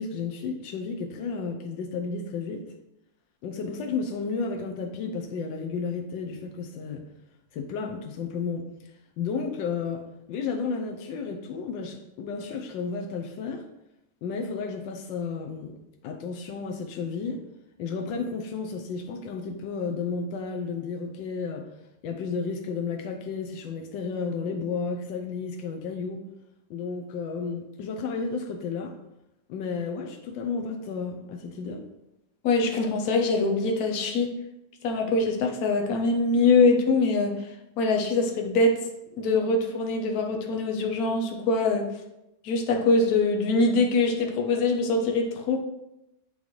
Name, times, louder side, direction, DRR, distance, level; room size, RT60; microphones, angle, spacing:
voice 1, 0.0-2.6 3.4-7.0 7.5-8.7 9.2-13.6 14.2-15.8 16.0-17.4 17.8-21.7 22.0-26.2 26.7-28.9 29.5-31.8, left 5 dB, 80° left, 4 dB, 1.3 m, -32 dB
voice 2, 32.4-34.3 34.8-37.3 37.8-38.8 39.2-41.8 42.4-45.6, left 3 dB, 60° left, 2 dB, 1.2 m, -23 dB
8.5 x 3.9 x 3.1 m, 0.89 s
omnidirectional pair, 2.0 m